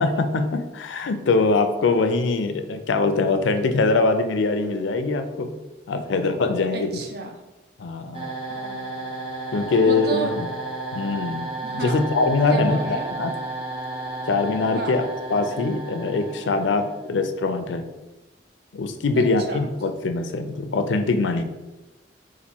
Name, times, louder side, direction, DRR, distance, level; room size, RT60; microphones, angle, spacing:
voice 1, 0.0-5.5 5.9-6.9 7.8-8.3 9.5-10.5 10.9-13.4 14.3-17.9 18.7-21.4, left 3 dB, 90° left, 8 dB, 0.4 m, -23 dB
voice 2, 6.7-7.3 8.5-9.0 9.7-10.4 11.6-12.0 12.5-13.1 14.7-15.0 19.1-19.6, right 2 dB, 55° right, 3 dB, 0.6 m, -32 dB
sound 1, 8.1-17.1, right 2 dB, 30° right, 0.9 m, -33 dB
4.1 x 2.5 x 4.3 m, 1.1 s
head